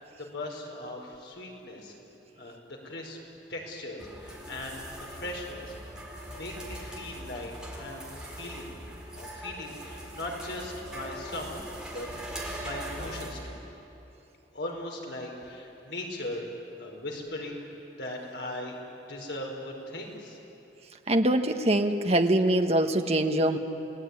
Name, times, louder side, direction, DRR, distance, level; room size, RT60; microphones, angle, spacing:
voice 1, 0.0-2.0 2.4-3.2 3.5-5.7 6.3-8.7 9.1-11.6 11.9-12.1 12.6-13.6 14.5-16.4 16.8-17.7 18.0-18.7 19.1-20.4, left 1 dB, 70° left, 0 dB, 4.7 m, -39 dB
sound 1, 4.0-13.3, right 1 dB, 5° right, 4.4 m, -41 dB
voice 2, 21.1-23.6, right 1 dB, 35° right, 6 dB, 1.3 m, -23 dB
29.5 x 18.5 x 9.7 m, 3.0 s
head